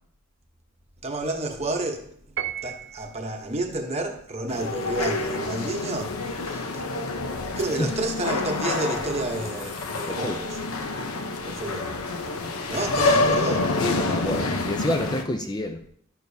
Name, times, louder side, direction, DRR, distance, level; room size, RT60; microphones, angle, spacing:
voice 1, 1.0-2.2 2.6-6.8 7.6-10.6 11.5-11.9 12.7-13.7, right 2 dB, 30° right, 0.9 m, -30 dB
Piano, 2.4-3.3, right 10 dB, 55° right, 0.6 m, -33 dB
sound 1, 4.5-15.2, left 3 dB, 75° left, 0.8 m, -27 dB
voice 2, 10.1-10.4 11.0-11.2 13.8-15.8, left 1 dB, 20° left, 0.4 m, -29 dB
12.0 x 6.5 x 2.7 m
head